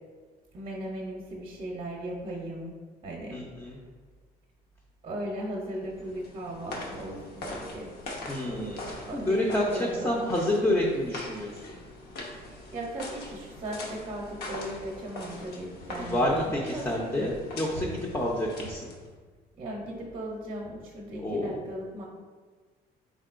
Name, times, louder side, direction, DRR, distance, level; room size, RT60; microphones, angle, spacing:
voice 1, 0.5-2.8 3.0-3.7 5.0-7.9 8.4-10.2 12.4-17.3 19.6-22.1, right 1 dB, 35° right, -2 dB, 0.7 m, -37 dB
voice 2, 3.3-3.8 8.3-8.8 9.1-9.6 10.0-11.5 16.0-18.9 21.2-21.5, left 1 dB, 15° left, -2 dB, 0.5 m, -28 dB
sound 1, 5.9-19.2, left 1 dB, 65° left, 0.8 m, -42 dB
3.9 x 3.7 x 2.4 m, 1.5 s
cardioid pair, 110°, 17 cm